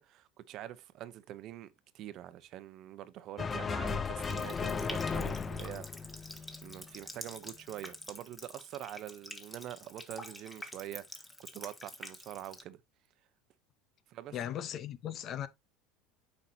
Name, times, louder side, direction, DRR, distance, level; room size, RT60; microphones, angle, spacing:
voice 1, 0.0-1.7 1.9-6.2 6.6-11.3 11.5-12.8 14.1-14.4, right 12 dB, 55° right, 0.9 m, -45 dB
sound 1, 3.4-6.9, left 5 dB, 25° left, 0.7 m, -36 dB
Water tap faucet, 4.2-12.6, left 1 dB, 10° left, 1.7 m, -48 dB
voice 2, 14.3-15.5, left 10 dB, 45° left, 0.9 m, -38 dB
8.5 x 5.6 x 2.8 m
hypercardioid pair, 85°, 0 cm